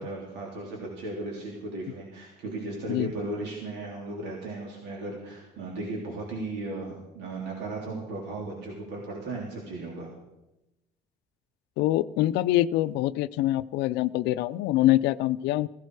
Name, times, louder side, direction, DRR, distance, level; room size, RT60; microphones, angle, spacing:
voice 1, 0.0-10.1, right 2 dB, 90° right, -2 dB, 3.3 m, -36 dB
voice 2, 11.8-15.7, left 15 dB, 90° left, 14 dB, 0.5 m, -24 dB
15.5 x 15.5 x 4.8 m, 0.95 s
cardioid pair, 110°, 17 cm